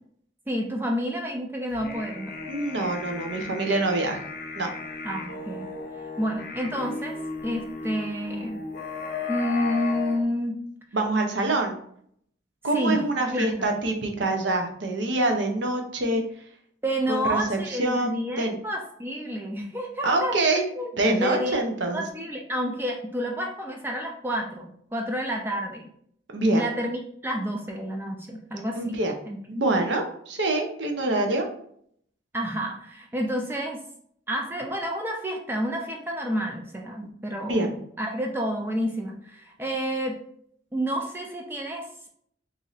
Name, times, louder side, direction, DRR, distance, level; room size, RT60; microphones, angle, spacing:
voice 1, 0.5-2.3 5.0-5.7 6.2-7.2 7.4-8.6 9.3-10.6 12.7-13.0 13.3-13.7 16.8-20.4 20.7-21.6 21.9-25.9 26.5-29.0 29.3-29.6 32.3-33.8 34.3-40.2 40.7-42.1, equal, 10° right, 1 dB, 0.3 m, -29 dB
sound 1, 1.7-10.2, left 4 dB, 45° left, 0.6 m, -35 dB
voice 2, 2.5-4.2 4.6-4.7 10.9-11.8 12.6-16.2 17.1-18.6 20.0-20.6 20.9-22.0 26.3-26.7 28.7-29.1 29.5-31.5 37.5-37.7, right 2 dB, 70° right, 3 dB, 0.7 m, -25 dB
3.1 x 2.6 x 3.9 m, 0.66 s
head